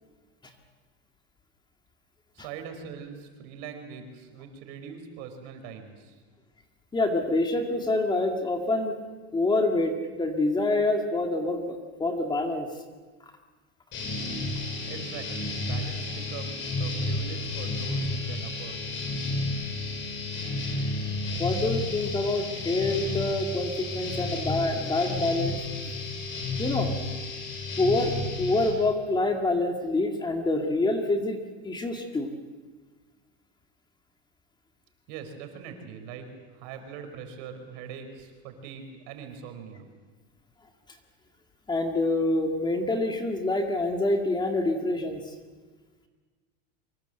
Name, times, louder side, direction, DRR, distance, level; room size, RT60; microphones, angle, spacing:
voice 1, 2.3-6.2 14.9-18.9 35.1-36.3 36.5-39.8, right 7 dB, 60° right, 6 dB, 4.9 m, -42 dB
voice 2, 6.9-8.9 9.3-12.7 21.4-25.6 26.6-26.9 27.8-31.4 31.6-32.3 41.7-45.3, left 2 dB, 15° left, 4 dB, 2.0 m, -26 dB
sound 1, 13.9-28.7, left 2 dB, 40° left, 6.2 m, -32 dB
24.5 x 22.5 x 7.9 m, 1.4 s
supercardioid pair, 140°, 31 cm